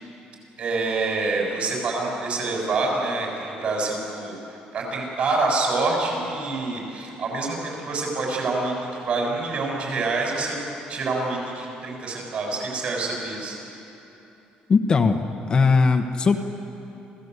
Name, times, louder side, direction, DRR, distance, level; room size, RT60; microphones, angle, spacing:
voice 1, 0.6-10.6 10.9-13.6, right 3 dB, 50° right, -1 dB, 7.2 m, -26 dB
voice 2, 14.7-15.2 15.5-16.4, left 4 dB, 30° left, 5 dB, 1.1 m, -19 dB
27.5 x 17.0 x 8.2 m, 2.9 s
cardioid pair, 135°, 3 cm